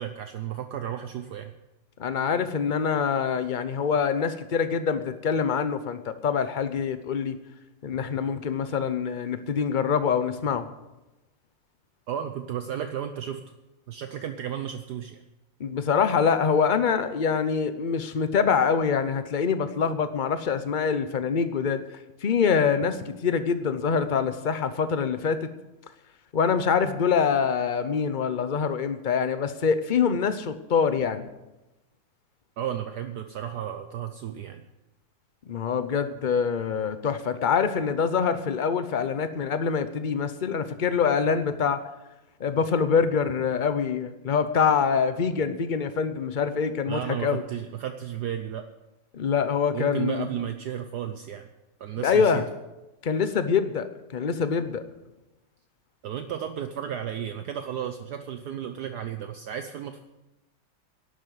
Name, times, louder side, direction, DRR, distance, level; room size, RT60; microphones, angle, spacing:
voice 1, 0.0-1.5 12.1-13.4 13.9-15.2 32.6-34.6 46.9-48.6 49.7-51.5 51.8-52.4 56.0-60.0, right 9 dB, 65° right, 7 dB, 1.2 m, -33 dB
voice 2, 2.0-7.4 7.8-10.7 15.6-21.8 22.2-25.5 26.3-31.3 35.5-41.8 42.4-47.4 49.1-50.3 52.0-52.5 53.0-54.8, left 6 dB, 60° left, 11 dB, 0.5 m, -25 dB
11.5 x 8.7 x 9.3 m, 1.0 s
omnidirectional pair, 2.0 m